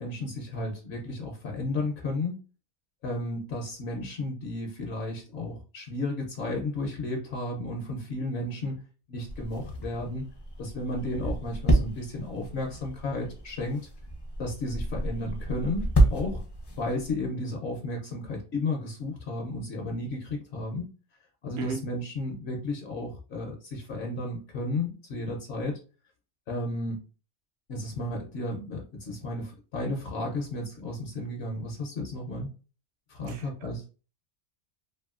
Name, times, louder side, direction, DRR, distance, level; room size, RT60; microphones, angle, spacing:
voice 1, 0.0-2.3 3.0-10.3 10.6-13.8 14.4-16.4 16.7-20.9 21.4-25.8 26.5-27.0 27.7-32.5 33.1-33.8, left 2 dB, 70° left, 0.9 m, -33 dB
sound 1, 9.3-17.1, right 1 dB, 30° left, 0.4 m, -29 dB
voice 2, 33.3-33.9, right 3 dB, 70° right, 0.9 m, -37 dB
2.7 x 2.6 x 2.4 m
omnidirectional pair, 1.2 m